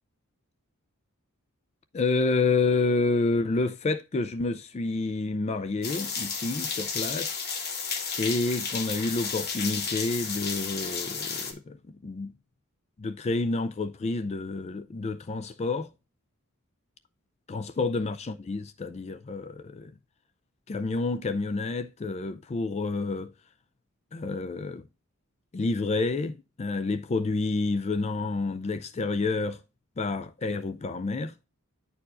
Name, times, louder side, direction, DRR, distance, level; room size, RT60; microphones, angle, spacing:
voice 1, 1.9-7.4 8.2-11.8 12.0-12.3 13.0-15.9 17.5-19.9 20.7-23.3 24.1-24.8 25.5-29.6 30.0-31.3, left 3 dB, 30° left, 0.3 m, -29 dB
sound 1, 5.8-11.5, left 5 dB, 45° left, 1.2 m, -32 dB
9.6 x 4.6 x 2.5 m
head